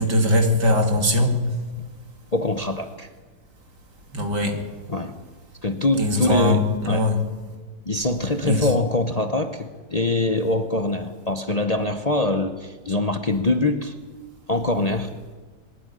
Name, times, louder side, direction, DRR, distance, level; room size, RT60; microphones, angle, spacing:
voice 1, 0.0-1.4 4.1-4.6 6.0-7.2 8.5-8.7, left 1 dB, 85° right, 4 dB, 3.2 m, -20 dB
voice 2, 2.3-3.1 4.9-5.1 5.6-7.1 7.9-13.9 14.5-15.1, left 2 dB, 30° left, 7 dB, 0.7 m, -23 dB
22.0 x 13.0 x 9.9 m, 1.4 s
omnidirectional pair, 1.8 m